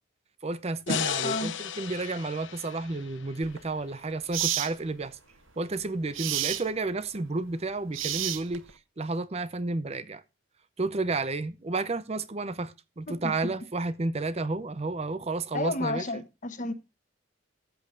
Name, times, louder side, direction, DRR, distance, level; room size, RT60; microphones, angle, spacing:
voice 1, 0.4-5.2 5.6-8.6 9.0-10.2 10.8-16.1, right 3 dB, 30° right, 0.6 m, -31 dB
sound 1, 0.9-4.1, left 7 dB, 65° left, 0.7 m, -34 dB
sound 2, 3.4-3.6 4.3-4.7 6.1-6.6 7.9-8.7, right 12 dB, 75° right, 0.9 m, -29 dB
voice 2, 13.1-13.5 15.5-16.7, left 2 dB, 40° left, 1.1 m, -32 dB
14.0 x 8.3 x 2.5 m
head